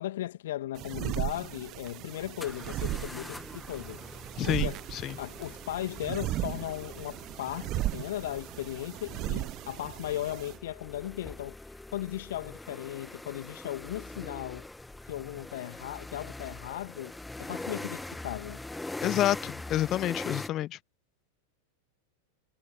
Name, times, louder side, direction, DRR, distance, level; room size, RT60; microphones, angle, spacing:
voice 1, 0.0-4.8 5.2-11.6 11.9-14.7 15.1-17.1 17.4-18.6, left 14 dB, 55° left, 2.2 m, -37 dB
sound 1, 0.8-10.6, right 16 dB, 35° right, 0.8 m, -36 dB
sound 2, 2.4-20.5, left 2 dB, 5° left, 1.7 m, -43 dB
voice 2, 4.4-5.1 19.0-20.8, left 13 dB, 35° left, 0.3 m, -29 dB
figure-of-eight pair, 90°, 0 cm